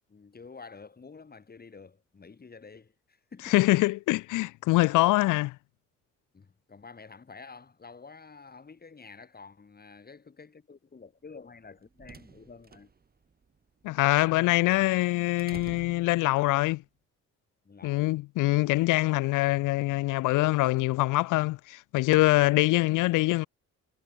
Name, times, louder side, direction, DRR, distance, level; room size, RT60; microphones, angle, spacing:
voice 1, 0.1-3.6 6.3-12.9 17.6-18.5, left 4 dB, 30° left, 3.3 m, -49 dB
voice 2, 3.5-5.6 13.8-16.8 17.8-23.5, left 19 dB, 90° left, 0.6 m, -24 dB
sound 1, 11.5-16.8, right 5 dB, 30° right, 2.1 m, -52 dB
cardioid pair, 90°, 30 cm